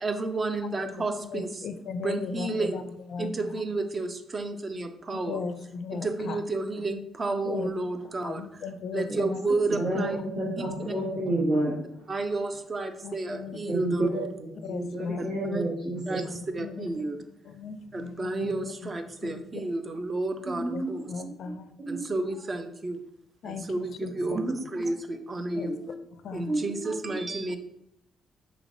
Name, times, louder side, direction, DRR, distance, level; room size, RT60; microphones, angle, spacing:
voice 1, 0.0-1.6 2.0-2.9 3.2-5.4 5.9-8.6 8.9-10.2 12.1-14.3 15.2-15.6 16.1-17.2 17.9-21.1 21.9-23.0 23.4-25.8 26.3-27.6, right 2 dB, 35° right, 8 dB, 0.5 m, -31 dB
voice 2, 1.2-2.8 3.1-3.3 5.1-6.4 7.4-7.7 8.2-9.4 9.8-9.9 13.0-13.9 14.6-15.2 16.6-17.0 17.5-18.9 19.2-19.4 20.7-21.7 23.4-24.4 25.5-25.7 26.2-26.5, left 5 dB, 65° left, 9 dB, 0.4 m, -37 dB
voice 3, 9.7-12.1 13.7-16.2 18.4-18.5 20.4-20.9 21.2-21.3 21.8-22.1 24.3-24.6 25.5-25.9 26.5-26.9, right 1 dB, 75° right, -10 dB, 1.4 m, -30 dB
4.9 x 3.1 x 2.6 m, 0.77 s
cardioid pair, 90°, 0 cm